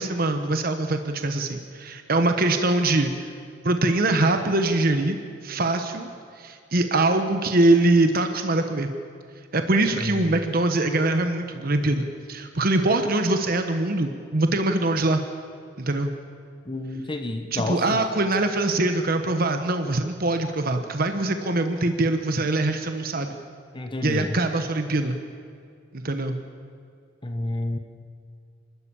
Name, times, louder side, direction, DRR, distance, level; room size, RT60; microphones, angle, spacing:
voice 1, 0.0-3.3 3.6-5.2 5.4-6.1 6.4-8.9 9.5-15.2 15.8-16.1 17.5-23.3 24.0-25.2 25.9-26.4, right 2 dB, 50° right, 7 dB, 1.2 m, -23 dB
voice 2, 16.7-18.0 23.7-24.4 27.2-27.8, left 1 dB, 25° left, 6 dB, 1.1 m, -29 dB
27.0 x 13.0 x 8.7 m, 2.3 s
head